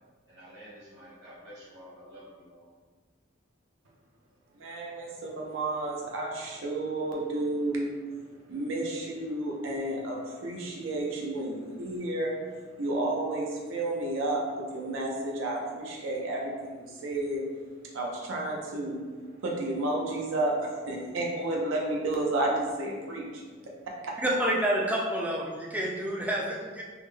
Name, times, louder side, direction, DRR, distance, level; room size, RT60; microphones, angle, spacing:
voice 1, 0.3-2.7, equal, 60° right, 1.2 m, -49 dB
voice 2, 4.6-7.9 8.5-12.3 12.8-17.4 17.9-19.0 19.4-20.5 20.9-23.4 24.0-24.1, right 2 dB, 80° right, 0.5 m, -31 dB
voice 3, 24.2-26.8, right 1 dB, 10° right, 0.3 m, -28 dB
3.5 x 2.0 x 3.2 m
head